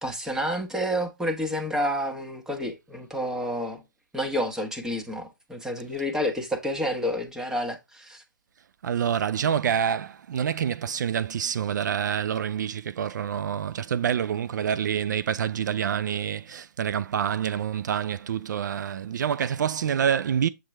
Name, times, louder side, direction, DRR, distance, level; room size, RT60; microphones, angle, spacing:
voice 1, 0.0-3.8 4.1-8.2, equal, 5° right, 1.2 m, -29 dB
voice 2, 8.8-20.5, right 8 dB, 65° right, 0.4 m, -27 dB
7.5 x 4.4 x 3.3 m
figure-of-eight pair, 120°, 11 cm